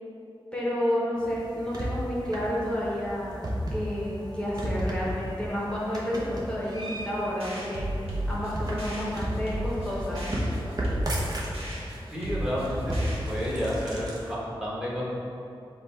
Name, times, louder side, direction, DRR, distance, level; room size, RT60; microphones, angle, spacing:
voice 1, 0.5-3.4 3.7-7.9 8.3-10.2, equal, 10° left, -7 dB, 0.9 m, -30 dB
sound 1, 1.2-14.3, equal, 40° right, 0.8 m, -34 dB
sound 2, 7.4-13.6, right 1 dB, 80° right, 1.1 m, -35 dB
voice 2, 12.1-13.0 13.3-15.1, equal, 5° right, -7 dB, 1.3 m, -30 dB
5.3 x 2.3 x 4.3 m, 2.6 s
wide cardioid pair, 60°, 10 cm